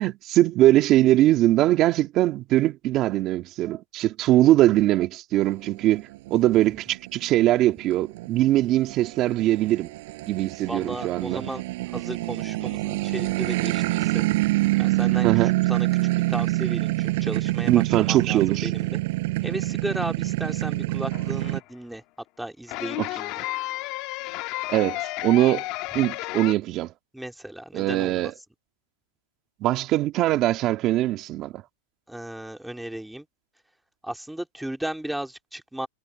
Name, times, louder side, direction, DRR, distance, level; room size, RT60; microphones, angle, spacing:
voice 1, 0.0-9.9 10.2-11.4 15.2-15.5 17.7-18.7 23.0-23.1 24.7-25.6 25.9-26.9 27.7-28.3 29.6-31.6, right 15 dB, 35° right, 2.1 m, -21 dB
sound 1, 5.5-21.6, right 20 dB, 60° right, 7.4 m, -26 dB
voice 2, 10.7-14.2 14.8-15.9 16.3-19.0 19.4-22.0 22.4-23.4 25.9-26.0 27.1-28.3 32.1-33.3 34.0-35.9, right 1 dB, ahead, 2.3 m, -35 dB
sound 2, 20.7-21.6 22.7-26.5, left 20 dB, 45° left, 1.8 m, -32 dB
supercardioid pair, 145°, 0 cm